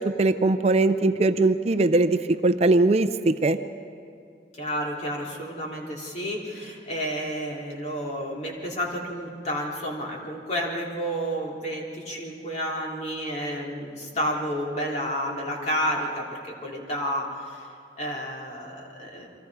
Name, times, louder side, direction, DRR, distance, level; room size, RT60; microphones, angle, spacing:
voice 1, 0.0-3.6, right 2 dB, 35° right, 10 dB, 0.5 m, -21 dB
voice 2, 4.5-17.7 18.0-19.3, equal, 40° left, -2 dB, 3.2 m, -31 dB
29.0 x 23.5 x 4.8 m, 2.4 s
head